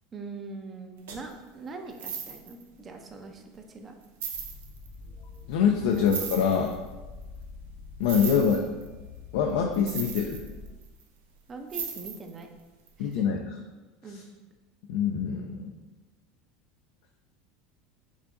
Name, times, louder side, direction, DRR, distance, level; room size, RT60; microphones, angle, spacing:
voice 1, 0.1-4.0 5.9-6.1 11.5-12.5 13.0-13.2 14.0-14.2, right 3 dB, 30° right, 4 dB, 0.5 m, -42 dB
sound 1, 1.1-1.3 1.9-2.6 3.4-3.5 4.0-4.9 5.9-6.7 8.0-8.9 9.7-11.0 11.7-12.4 12.9-13.0, right 7 dB, 90° right, 0.5 m, -36 dB
sound 2, 4.3-10.7, left 4 dB, 55° left, 0.8 m, -46 dB
voice 2, 5.5-6.7 8.0-8.7 9.3-10.4 13.0-13.4 14.9-15.7, left 7 dB, 75° left, 2 dB, 0.3 m, -24 dB
4.7 x 2.6 x 2.5 m, 1.2 s
supercardioid pair, 105°, 0 cm